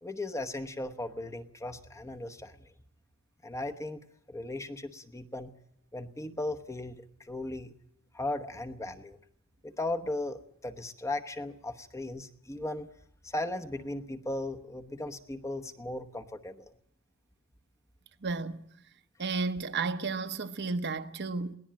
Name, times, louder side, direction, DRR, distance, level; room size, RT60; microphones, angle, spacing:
voice 1, 0.0-2.7 3.4-5.5 5.9-7.7 8.1-9.2 9.6-12.9 13.2-16.7, left 2 dB, 15° left, 1.0 m, -37 dB
voice 2, 18.2-18.6 19.2-21.5, right 4 dB, 50° right, 1.0 m, -32 dB
22.0 x 17.5 x 7.4 m
head